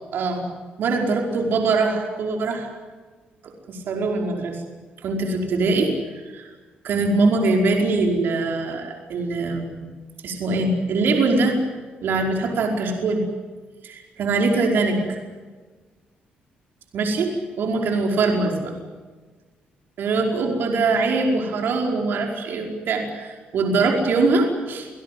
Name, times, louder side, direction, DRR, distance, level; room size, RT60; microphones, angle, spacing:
voice 1, 0.1-0.5 0.8-2.7 3.7-4.6 5.0-6.5 6.8-9.9 10.2-11.6 12.0-13.2 13.8-15.2 16.9-18.7 20.0-24.9, right 3 dB, 70° right, 2 dB, 5.1 m, -22 dB
27.5 x 18.0 x 9.5 m, 1.4 s
cardioid pair, 90°, 4 cm